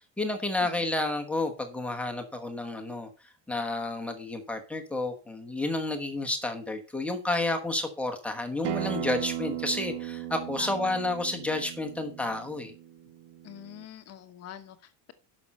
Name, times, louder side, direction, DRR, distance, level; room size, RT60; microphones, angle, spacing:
voice 1, 0.2-3.1 3.5-12.7, left 2 dB, 5° left, 1.2 m, -31 dB
Acoustic guitar, 8.6-13.8, right 12 dB, 60° right, 1.0 m, -37 dB
voice 2, 10.6-10.9 13.4-15.1, left 11 dB, 30° left, 1.1 m, -45 dB
10.5 x 6.2 x 5.4 m
cardioid pair, 175°, 47 cm